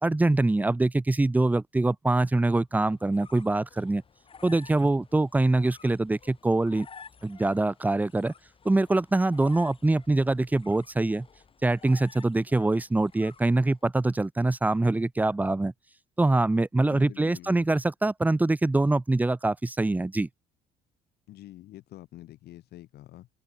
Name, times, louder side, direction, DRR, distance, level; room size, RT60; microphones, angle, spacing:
voice 1, 0.0-4.0 4.4-6.9 7.2-8.3 8.6-11.3 11.6-15.7 16.2-20.3, right 2 dB, 10° right, 0.7 m, -24 dB
sound 1, 2.7-13.9, left 6 dB, 30° left, 3.3 m, -53 dB
voice 2, 16.9-17.7 21.3-23.3, left 15 dB, 75° left, 3.0 m, -46 dB
open air
cardioid pair, 110°, 17 cm